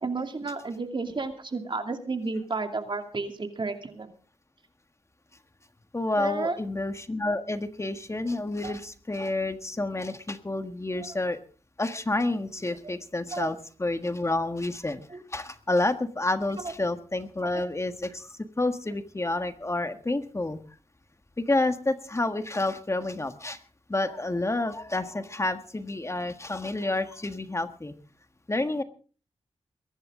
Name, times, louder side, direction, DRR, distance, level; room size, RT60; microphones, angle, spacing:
voice 1, 0.0-4.1 6.2-6.6 8.6-8.8 11.0-11.2 12.8-12.9 13.3-13.5 15.1-15.2 16.6-16.7 17.4-17.5, right 3 dB, 45° right, 6 dB, 2.6 m, -32 dB
voice 2, 5.9-11.4 11.8-15.0 15.3-20.6 21.5-23.6 23.9-27.9 28.5-28.8, left 2 dB, 25° left, 9 dB, 1.5 m, -29 dB
23.0 x 11.0 x 3.8 m, 0.39 s
cardioid pair, 55°, 11 cm